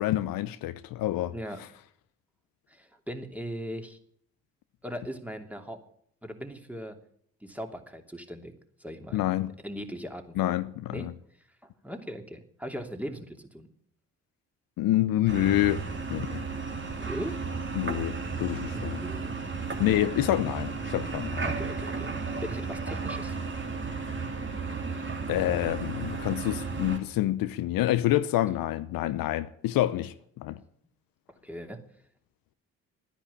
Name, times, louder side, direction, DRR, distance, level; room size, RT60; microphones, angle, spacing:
voice 1, 0.0-1.3 9.1-9.5 10.4-11.1 14.8-15.8 16.1-16.4 17.8-18.2 18.4-19.0 19.8-21.5 25.3-30.6, left 14 dB, 70° left, 0.8 m, -27 dB
voice 2, 1.3-1.6 2.7-4.0 4.8-5.8 6.2-7.0 7.4-8.5 8.8-9.2 9.6-10.6 10.9-11.1 11.8-13.7 16.9-17.4 18.7-19.4 21.4-23.4 31.4-31.8, equal, 5° right, 2.9 m, -39 dB
sound 1, 15.3-27.0, right 4 dB, 30° right, 3.0 m, -34 dB
12.5 x 10.0 x 8.7 m
hypercardioid pair, 40°, 36 cm